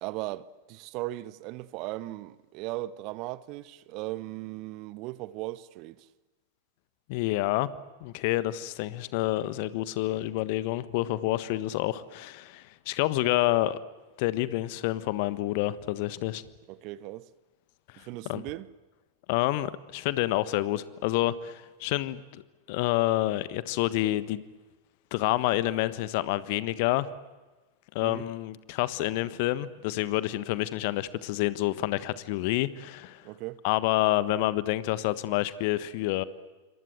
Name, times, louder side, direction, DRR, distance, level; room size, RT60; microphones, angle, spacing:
voice 1, 0.0-6.1 16.7-17.2 18.0-18.7 28.0-28.2 33.2-33.6, right 17 dB, 40° right, 0.9 m, -37 dB
voice 2, 7.1-7.7 8.0-13.8 14.2-16.4 18.0-18.4 19.3-22.4 22.7-24.4 25.1-27.1 27.9-33.3 33.6-36.2, left 16 dB, 45° left, 1.4 m, -28 dB
28.0 x 25.5 x 7.9 m
figure-of-eight pair, 90°, 0 cm